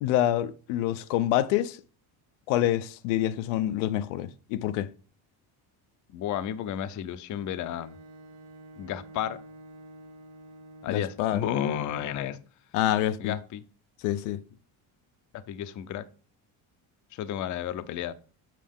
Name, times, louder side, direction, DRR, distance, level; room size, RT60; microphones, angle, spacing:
voice 1, 0.0-1.8 2.5-4.9 10.9-11.4 12.7-13.3 14.0-14.4, left 13 dB, 90° left, 0.7 m, -26 dB
voice 2, 6.1-8.0 8.8-9.4 10.8-12.4 13.2-13.6 15.3-16.1 17.1-18.1, left 10 dB, 40° left, 0.5 m, -32 dB
Bowed string instrument, 7.3-11.4, right 1 dB, 55° right, 1.6 m, -49 dB
7.5 x 5.8 x 3.5 m
cardioid pair, 135°, 46 cm